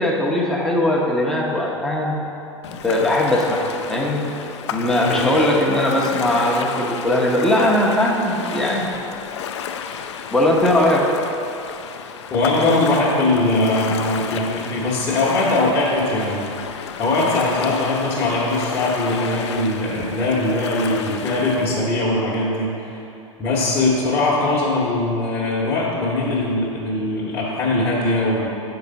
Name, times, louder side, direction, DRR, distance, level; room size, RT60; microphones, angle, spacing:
voice 1, 0.0-2.2 2.7-4.3 4.7-8.9 10.3-11.1, left 1 dB, 5° left, -3 dB, 0.9 m, -19 dB
Ocean, 2.6-21.7, left 7 dB, 60° left, 0.4 m, -32 dB
voice 2, 4.9-5.2 12.3-16.4 17.0-23.0 23.4-28.5, left 2 dB, 25° left, -7 dB, 1.1 m, -21 dB
7.0 x 4.7 x 3.9 m, 2.8 s
figure-of-eight pair, 90°, 17 cm